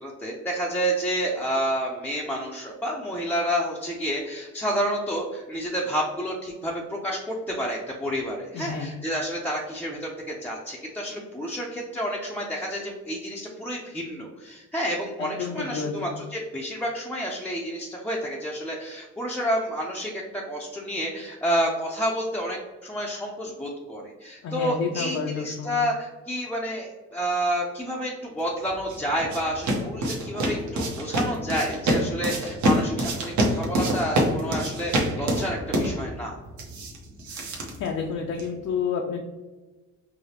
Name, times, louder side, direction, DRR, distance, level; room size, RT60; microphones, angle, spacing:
voice 1, 0.0-36.3, equal, 5° left, -4 dB, 0.5 m, -29 dB
voice 2, 8.5-8.9 15.2-16.1 24.4-25.8 37.4-37.5 37.8-39.2, left 6 dB, 60° left, 2 dB, 0.5 m, -30 dB
sound 1, 28.6-38.6, right 1 dB, 70° right, 0.9 m, -27 dB
4.8 x 2.0 x 2.8 m, 1.2 s
cardioid pair, 90°, 30 cm